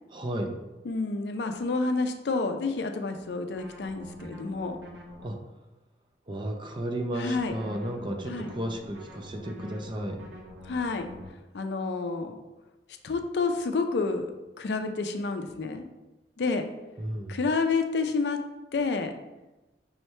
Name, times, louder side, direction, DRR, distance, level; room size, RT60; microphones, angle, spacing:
voice 1, 0.1-0.5 5.2-5.4 6.3-10.2 17.0-17.4, right 1 dB, 25° right, 4 dB, 0.5 m, -33 dB
voice 2, 0.8-4.8 7.2-7.5 8.3-8.5 10.7-11.1 11.5-12.4 13.0-14.3 14.6-15.9 16.4-16.6 17.3-18.4 18.7-19.1, left 4 dB, 65° left, 6 dB, 0.4 m, -29 dB
sound 1, 3.6-5.3 7.3-11.3, left 1 dB, 85° right, 0.9 m, -45 dB
5.5 x 3.1 x 3.2 m, 1.0 s
head